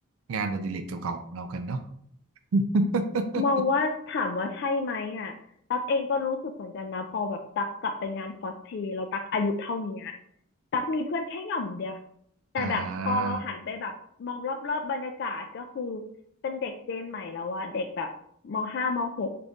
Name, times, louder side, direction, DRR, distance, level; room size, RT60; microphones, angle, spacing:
voice 1, 0.3-1.8 2.5-3.4 12.6-13.4, right 2 dB, 75° right, 8 dB, 0.4 m, -28 dB
voice 2, 3.4-5.3 5.7-10.2 10.7-12.0 12.5-13.9 14.2-16.0 16.4-18.1 18.4-19.3, left 3 dB, 50° left, 5 dB, 0.3 m, -30 dB
4.0 x 2.5 x 3.4 m, 0.66 s
head